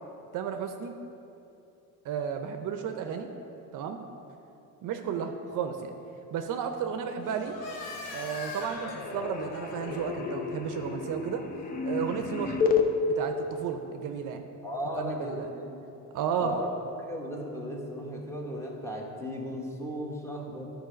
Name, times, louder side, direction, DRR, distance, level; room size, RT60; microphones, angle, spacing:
voice 1, 0.3-0.9 2.0-3.3 3.7-4.0 4.8-5.9 6.3-7.6 8.1-11.4 11.8-12.6 13.2-14.4 15.0-15.5 16.1-16.5, right 7 dB, 55° right, 6 dB, 0.6 m, -33 dB
sound 1, 6.9-7.4 7.7-12.9, left 6 dB, 25° left, 0.6 m, -32 dB
sound 2, 7.2-12.7, left 3 dB, 55° left, 1.4 m, -44 dB
voice 2, 14.6-15.8 16.4-16.7 17.1-20.7, equal, 5° left, -1 dB, 1.1 m, -36 dB
10.5 x 4.6 x 5.1 m, 2.9 s
cardioid pair, 120°, 37 cm